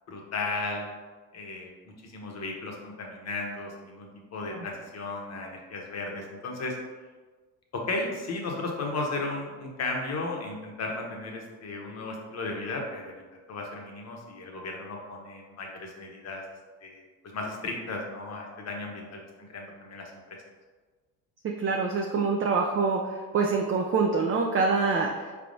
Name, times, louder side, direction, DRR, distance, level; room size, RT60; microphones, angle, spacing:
voice 1, 0.1-0.9 1.3-1.7 2.0-6.8 7.7-16.4 16.8-20.1, left 2 dB, 40° left, 0 dB, 1.0 m, -35 dB
voice 2, 21.6-25.3, right 4 dB, 35° right, 1 dB, 0.4 m, -25 dB
4.4 x 3.5 x 2.6 m, 1.3 s
supercardioid pair, 90°, 38 cm